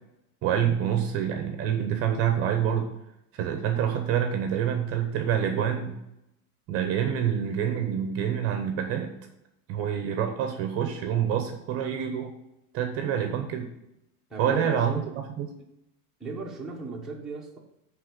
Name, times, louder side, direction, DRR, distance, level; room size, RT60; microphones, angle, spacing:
voice 1, 0.4-2.9 3.3-6.0 6.7-9.1 9.7-12.3 12.7-13.7 14.4-15.5, right 9 dB, 35° right, 5 dB, 0.9 m, -27 dB
voice 2, 14.3-15.1 16.2-17.6, right 3 dB, ahead, -5 dB, 1.0 m, -35 dB
9.4 x 3.6 x 6.7 m, 0.84 s
cardioid pair, 175°, 40 cm